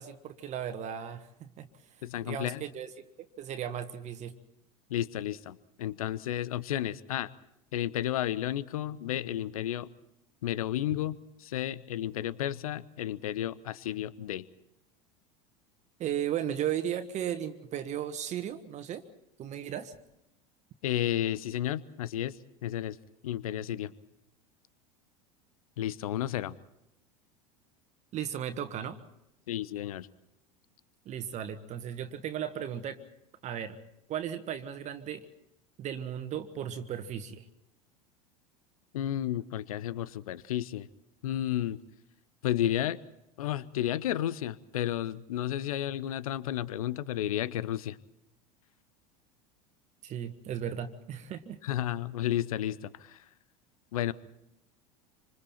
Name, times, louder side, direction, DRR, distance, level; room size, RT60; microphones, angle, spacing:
voice 1, 0.0-1.7 2.2-3.1 3.4-4.4 16.0-19.0 19.4-19.9 28.1-29.0 31.0-33.0 33.4-33.8 34.1-35.3 35.8-37.5 50.0-51.6, right 9 dB, 35° right, 9 dB, 1.5 m, -35 dB
voice 2, 2.0-2.6 4.9-7.3 7.7-9.9 10.4-14.5 20.8-22.4 22.6-23.0 23.2-23.9 25.8-26.6 29.5-30.1 38.9-40.9 41.2-41.8 42.4-43.0 43.4-48.0 51.6-53.2 53.9-54.1, left 12 dB, 65° left, 20 dB, 0.8 m, -32 dB
27.0 x 26.5 x 4.4 m, 0.85 s
figure-of-eight pair, 75°, 20 cm